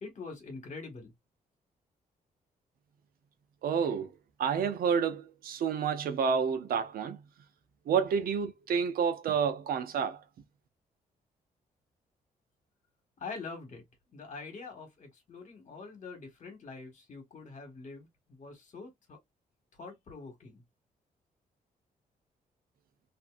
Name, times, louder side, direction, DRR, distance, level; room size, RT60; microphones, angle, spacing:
voice 1, 0.0-1.1 13.2-13.8 14.1-19.2 19.8-20.6, left 4 dB, 50° left, 1.4 m, -45 dB
voice 2, 3.6-4.1 4.4-7.2 7.9-10.2, right 6 dB, 75° right, 0.6 m, -29 dB
2.7 x 2.6 x 2.4 m
cardioid pair, 105°, 15 cm